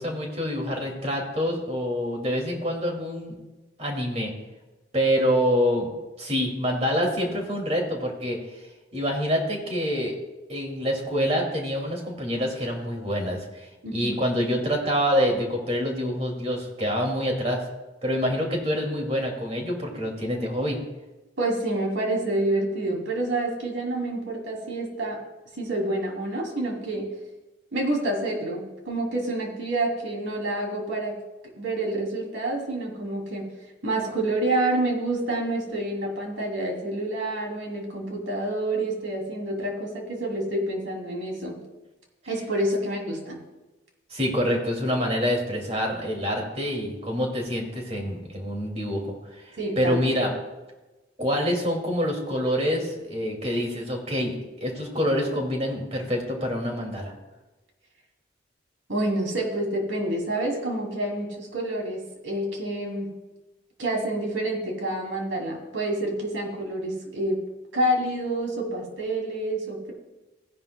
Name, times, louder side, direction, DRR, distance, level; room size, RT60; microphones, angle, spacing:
voice 1, 0.0-3.3 3.8-4.3 4.9-5.9 6.2-8.6 8.9-10.1 10.5-17.6 18.0-20.8 44.1-49.1 49.3-50.3 51.2-57.1, equal, 35° right, 0 dB, 2.5 m, -26 dB
voice 2, 13.8-14.2 21.4-25.2 25.6-27.0 27.7-31.2 31.6-33.4 33.8-41.6 42.3-43.4 49.6-50.0 58.9-63.1 63.8-67.4 67.7-69.9, right 1 dB, 90° right, 0 dB, 3.0 m, -28 dB
16.5 x 11.0 x 2.3 m, 1.1 s
head